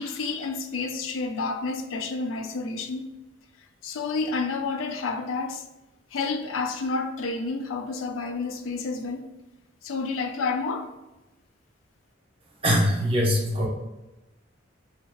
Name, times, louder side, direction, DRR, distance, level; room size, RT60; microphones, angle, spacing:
voice 1, 0.0-3.1 3.8-5.7 6.1-9.3 9.8-10.9, left 4 dB, 85° left, 0.4 m, -30 dB
voice 2, 12.6-13.7, equal, 30° right, 0.7 m, -22 dB
2.7 x 2.4 x 3.1 m
head